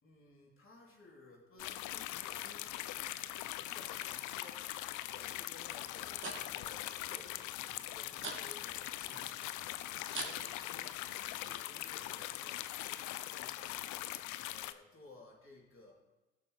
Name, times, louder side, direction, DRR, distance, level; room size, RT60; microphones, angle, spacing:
voice 1, 0.0-3.0 3.5-4.7 5.0-9.7 10.1-11.0 11.4-14.0 14.5-15.9, left 2 dB, 40° left, -3 dB, 3.9 m, -58 dB
sound 1, 1.6-14.7, left 15 dB, 70° left, 0.5 m, -41 dB
sound 2, 5.7-11.6, right 3 dB, 40° right, 2.6 m, -49 dB
15.5 x 7.5 x 3.5 m, 1.1 s
hypercardioid pair, 45°, 31 cm